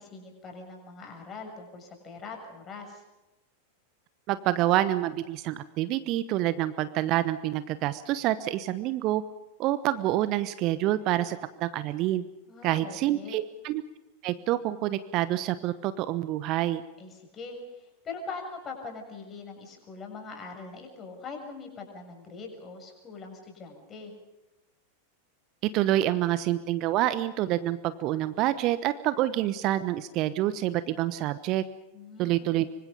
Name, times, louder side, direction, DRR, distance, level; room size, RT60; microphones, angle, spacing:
voice 1, 0.0-3.0 12.5-13.4 17.0-24.1 31.9-32.6, left 4 dB, 25° left, 3 dB, 7.0 m, -42 dB
voice 2, 4.3-9.2 9.6-12.2 12.6-13.8 14.2-16.8 25.7-31.6 32.2-32.7, right 14 dB, 40° right, 14 dB, 1.1 m, -27 dB
25.5 x 25.0 x 5.3 m, 0.99 s
figure-of-eight pair, 90°, 0 cm